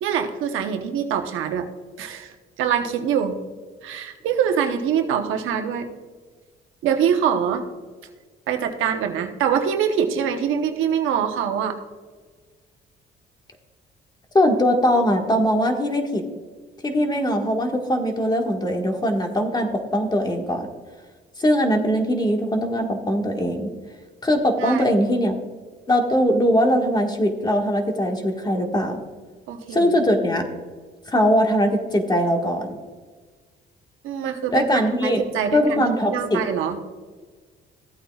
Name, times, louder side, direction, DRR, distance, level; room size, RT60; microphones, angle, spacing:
voice 1, 0.0-1.7 2.0-3.4 3.8-5.9 6.8-7.6 8.5-11.8 24.6-24.9 29.5-29.9 34.0-36.8, right 8 dB, 90° right, 6 dB, 1.0 m, -24 dB
voice 2, 14.3-16.2 16.8-20.7 21.4-23.7 24.2-25.4 25.9-29.0 29.7-30.5 31.1-32.7 34.5-35.2 35.5-36.4, equal, 20° left, 3 dB, 1.6 m, -21 dB
15.0 x 8.5 x 2.4 m, 1.4 s
cardioid pair, 90°, 20 cm